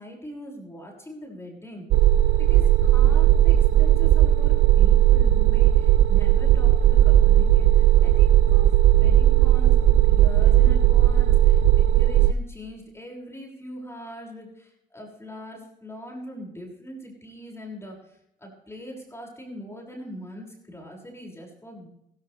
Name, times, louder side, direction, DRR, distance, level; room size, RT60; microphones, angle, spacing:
voice 1, 0.0-1.9 2.4-21.9, equal, 15° left, -1 dB, 6.6 m, -41 dB
sound 1, 1.9-12.3, right 12 dB, 80° right, 0.5 m, -17 dB
16.0 x 16.0 x 3.5 m, 0.79 s
cardioid pair, 90°, 20 cm